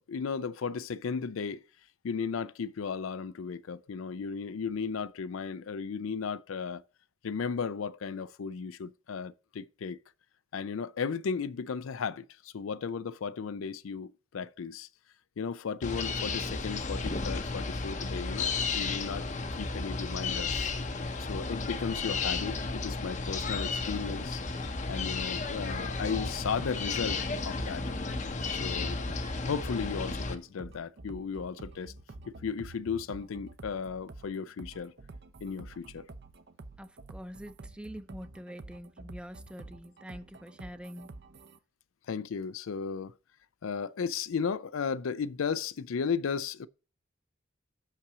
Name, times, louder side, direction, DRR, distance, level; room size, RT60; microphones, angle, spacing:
voice 1, 0.0-1.6 2.0-6.8 7.2-10.0 10.5-14.9 15.4-19.3 19.6-20.7 21.2-24.4 24.9-27.8 28.5-29.0 29.4-31.9 32.3-34.9 35.4-36.1 42.1-43.1 43.6-46.7, left 6 dB, 85° left, 0.4 m, -35 dB
sound 1, 15.8-30.3, left 4 dB, 35° left, 0.7 m, -33 dB
sound 2, 25.6-41.6, right 2 dB, 55° right, 0.6 m, -49 dB
voice 2, 36.8-41.1, equal, 5° right, 0.5 m, -45 dB
6.1 x 5.7 x 6.7 m
head